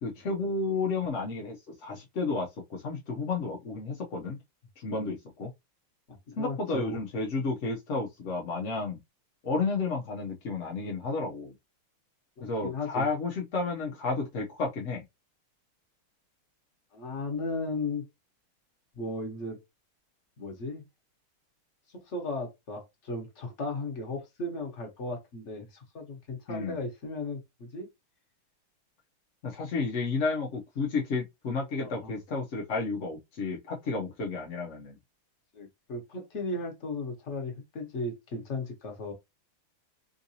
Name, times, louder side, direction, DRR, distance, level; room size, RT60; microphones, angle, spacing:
voice 1, 0.0-4.4 4.8-5.5 6.4-9.0 9.4-11.5 12.4-15.0 26.5-26.8 29.4-35.0, left 3 dB, 75° left, 0.6 m, -32 dB
voice 2, 6.1-7.0 12.4-13.1 16.9-18.1 18.9-19.6 20.4-20.8 21.9-27.9 31.8-32.2 35.5-39.1, left 2 dB, 40° left, 1.1 m, -36 dB
3.7 x 2.6 x 2.7 m
omnidirectional pair, 2.3 m